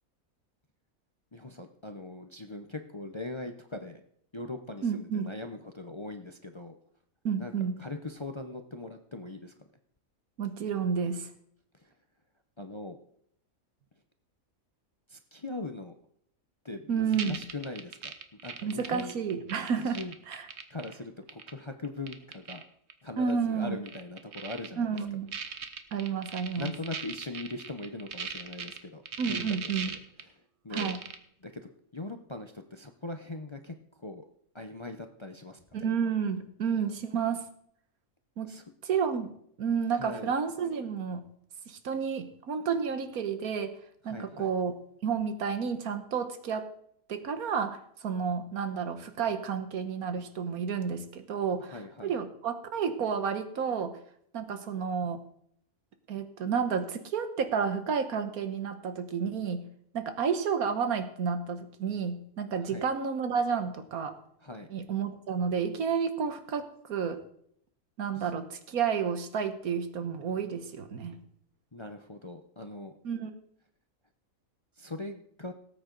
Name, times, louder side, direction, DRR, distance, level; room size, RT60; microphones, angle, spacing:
voice 1, 1.3-4.0 4.3-6.8 7.4-9.5 12.6-13.0 15.1-15.9 16.6-18.1 18.4-19.2 19.8-20.1 20.7-22.6 23.0-25.0 26.6-29.0 29.3-30.0 30.6-30.9 31.4-34.3 34.5-35.6 38.4-38.6 39.9-40.3 44.0-44.5 51.6-52.1 62.6-62.8 64.4-64.7 68.2-68.3 71.7-72.9 74.8-75.5, left 2 dB, 30° left, 6 dB, 0.6 m, -40 dB
voice 2, 4.8-5.3 7.2-7.8 10.4-11.3 16.9-17.4 18.6-20.0 20.3-20.5 23.2-23.8 24.8-25.4 25.9-26.7 29.2-30.0 30.7-31.0 35.7-37.4 38.4-38.5 38.8-39.3 39.6-41.2 41.7-43.8 44.0-44.7 45.0-46.7 47.1-51.8 52.0-54.0 54.3-55.2 56.1-59.7 59.9-64.2 64.7-67.2 68.0-71.2 73.0-73.3, right 6 dB, 90° right, 9 dB, 1.6 m, -31 dB
sound 1, 17.1-20.9 21.3-21.5 21.8-22.6 22.9-23.0 23.3-23.4 23.9-24.7 25.0-25.1 25.3-28.8 29.1-30.2 30.7-31.2, right 6 dB, 55° right, 1.2 m, -38 dB
18.0 x 8.6 x 3.9 m, 0.68 s
omnidirectional pair, 1.5 m